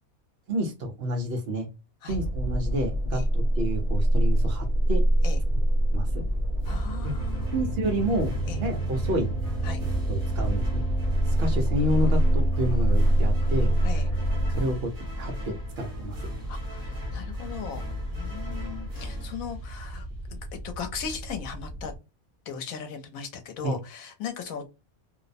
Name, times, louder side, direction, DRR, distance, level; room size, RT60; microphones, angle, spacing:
voice 1, 0.5-1.7 2.0-5.0 5.9-6.2 7.0-7.1 7.5-8.3 8.6-9.3 10.1-10.8 11.3-13.8 14.5-14.9 15.2-16.2 23.6-23.8, equal, 55° right, 4 dB, 0.8 m, -29 dB
sound 1, 2.1-14.6, right 1 dB, 60° left, 1.2 m, -25 dB
sound 2, 5.3-22.0, right 1 dB, 90° right, 0.4 m, -40 dB
Military march music, 6.6-20.2, left 1 dB, 20° right, 0.6 m, -38 dB
voice 2, 6.7-7.5 8.5-8.6 9.6-9.9 13.8-14.1 16.5-17.8 18.1-20.4 20.6-21.9 22.5-24.7, left 7 dB, 85° left, 6 dB, 1.1 m, -38 dB
2.6 x 2.1 x 2.5 m, 0.27 s
omnidirectional pair, 1.5 m